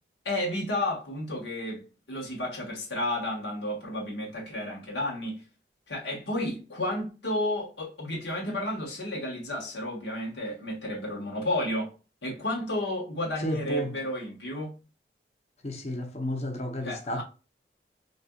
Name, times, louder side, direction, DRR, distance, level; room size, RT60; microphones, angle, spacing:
voice 1, 0.2-5.4 5.9-11.9 12.2-14.7 16.8-17.2, left 1 dB, 85° left, 1.3 m, -32 dB
voice 2, 13.4-13.9 15.6-17.2, equal, 35° left, 0.7 m, -32 dB
4.0 x 2.6 x 2.3 m
head